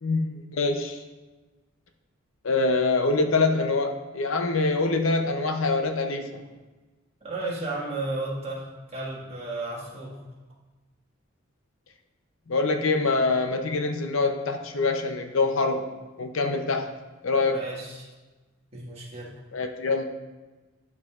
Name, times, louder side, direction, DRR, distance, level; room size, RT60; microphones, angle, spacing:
voice 1, 0.0-1.0 2.4-6.5 12.5-15.9 16.2-16.9 17.2-17.6 19.5-20.0, left 3 dB, 70° left, 6 dB, 0.7 m, -25 dB
voice 2, 7.2-10.2 17.5-18.1 18.7-19.3, right 2 dB, 30° right, -5 dB, 1.7 m, -33 dB
12.0 x 4.9 x 2.4 m, 1.2 s
head